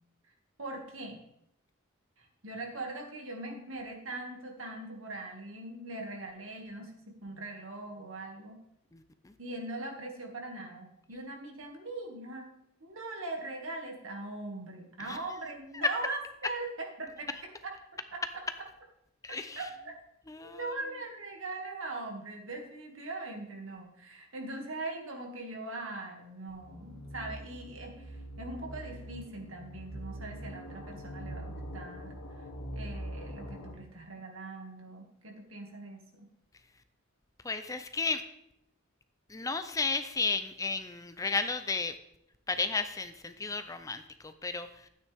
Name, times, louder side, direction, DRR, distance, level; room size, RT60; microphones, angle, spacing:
voice 1, 0.6-1.2 2.2-8.6 9.4-12.6 12.8-17.8 18.1-18.2 19.6-20.0 20.4-32.2 32.7-36.0, right 2 dB, 70° right, 1 dB, 2.1 m, -41 dB
voice 2, 8.9-9.3 15.1-15.2 19.2-19.6 20.3-20.7 37.4-38.2 39.3-41.9 42.5-44.9, left 4 dB, 15° left, 10 dB, 0.5 m, -33 dB
sound 1, 26.5-33.7, equal, 85° left, 1.7 m, -43 dB
12.5 x 9.2 x 3.5 m, 0.78 s
head